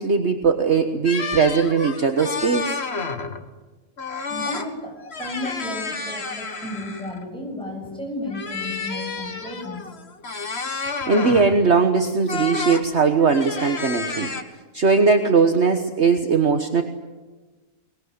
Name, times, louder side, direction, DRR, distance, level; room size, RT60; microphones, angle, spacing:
voice 1, 0.0-2.8 10.8-14.3 14.7-16.8, right 5 dB, 50° right, 6 dB, 1.6 m, -19 dB
sound 1, 1.0-3.4 4.0-4.7 5.0-7.2 8.3-11.6 12.3-12.8 13.2-14.4, left 4 dB, 45° left, 2.0 m, -30 dB
voice 2, 4.3-9.8, left 1 dB, 5° left, 0 dB, 7.9 m, -33 dB
23.0 x 21.0 x 9.8 m, 1.2 s
omnidirectional pair, 1.6 m